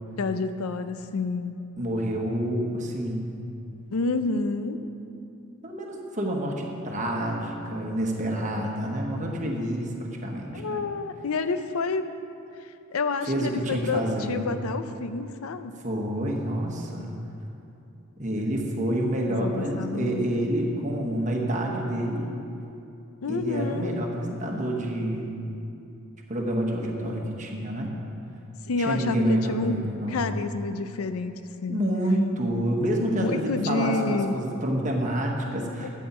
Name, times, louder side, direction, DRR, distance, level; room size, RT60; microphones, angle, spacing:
voice 1, 0.2-1.5 3.9-4.8 10.5-12.1 12.6-15.7 19.3-20.3 23.2-23.9 28.7-29.8 30.1-31.4 31.6-31.8 33.2-34.4 35.8-35.9, left 3 dB, 80° left, 10 dB, 0.5 m, -29 dB
voice 2, 1.8-3.3 5.6-10.8 13.3-14.6 15.8-17.1 18.2-22.3 23.3-25.3 26.3-27.9 28.8-30.3 31.7-35.9, right 1 dB, 35° right, 0 dB, 1.2 m, -28 dB
12.0 x 8.5 x 4.3 m, 2.8 s
head